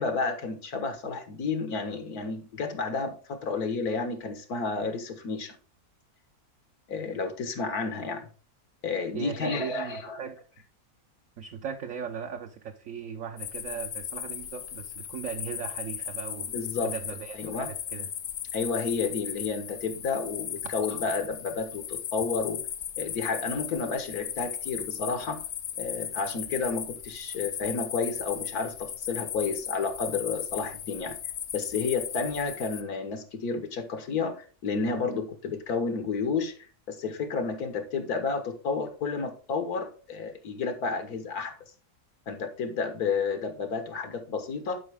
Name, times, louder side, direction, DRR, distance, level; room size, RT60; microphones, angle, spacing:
voice 1, 0.0-5.6 6.9-8.3 8.8-10.2 16.5-16.9 17.4-17.7 18.5-22.6 23.0-25.4 25.8-31.2 31.5-41.5 42.3-44.8, left 4 dB, 80° left, 8 dB, 1.8 m, -31 dB
voice 2, 9.1-10.4 11.4-16.5 16.8-18.1 20.6-20.7, right 7 dB, 65° right, 4 dB, 1.1 m, -38 dB
sound 1, 13.4-32.8, left 9 dB, 60° left, 1.1 m, -37 dB
11.0 x 5.1 x 3.5 m, 0.39 s
omnidirectional pair, 1.6 m